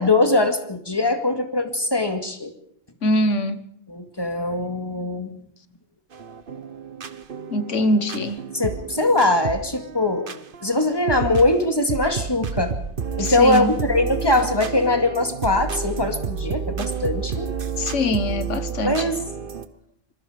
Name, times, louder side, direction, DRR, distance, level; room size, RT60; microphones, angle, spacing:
voice 1, 0.0-2.5 3.9-5.3 8.5-10.3 10.6-12.7 13.2-17.5 18.8-19.2, left 2 dB, 20° left, 6 dB, 2.2 m, -21 dB
voice 2, 3.0-3.6 7.5-8.4 13.2-13.7 17.8-19.1, left 1 dB, 65° left, 12 dB, 1.6 m, -23 dB
sound 1, 6.1-19.7, right 6 dB, 45° right, 1.2 m, -31 dB
26.5 x 20.5 x 5.1 m, 0.67 s
omnidirectional pair, 1.3 m